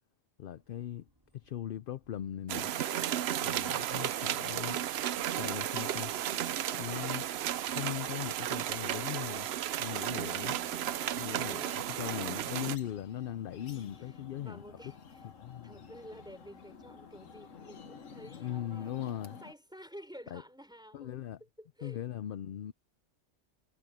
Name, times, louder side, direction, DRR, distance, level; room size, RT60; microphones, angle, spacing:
voice 1, 0.4-1.1 1.3-2.7 3.4-4.8 5.4-6.1 6.7-7.3 7.6-9.5 9.8-10.6 11.2-14.6 15.4-15.7 18.3-19.4 20.3-20.4 20.9-21.4 21.8-22.7, left 11 dB, 60° left, 0.6 m, -39 dB
sound 1, 0.5-19.3, equal, 20° right, 3.5 m, -67 dB
sound 2, 2.5-12.8, right 11 dB, 65° right, 0.8 m, -34 dB
sound 3, 10.6-19.5, left 5 dB, 85° left, 1.6 m, -52 dB
voice 2, 13.7-15.3 15.6-18.9 19.4-22.0, equal, 5° right, 4.3 m, -52 dB
omnidirectional pair, 1.3 m